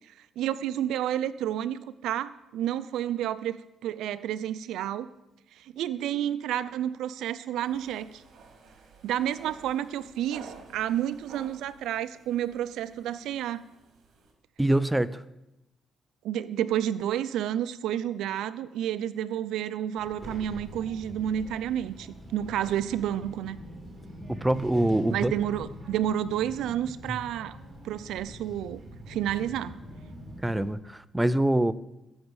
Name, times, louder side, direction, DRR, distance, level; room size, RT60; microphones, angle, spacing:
voice 1, 0.4-5.1 5.6-8.2 9.0-13.6 16.2-23.6 25.1-27.6 27.8-28.8 29.1-29.8, right 11 dB, 85° right, 15 dB, 0.4 m, -30 dB
sound 1, 7.6-14.3, right 5 dB, 65° right, 1.6 m, -52 dB
voice 2, 14.6-15.2 24.3-25.3 27.1-27.2 30.4-31.7, right 1 dB, 10° right, 14 dB, 0.4 m, -25 dB
Child speech kid speaking, 20.0-30.7, equal, 30° right, 3.9 m, -44 dB
14.0 x 6.4 x 4.8 m, 0.94 s
cardioid pair, 125°, 0 cm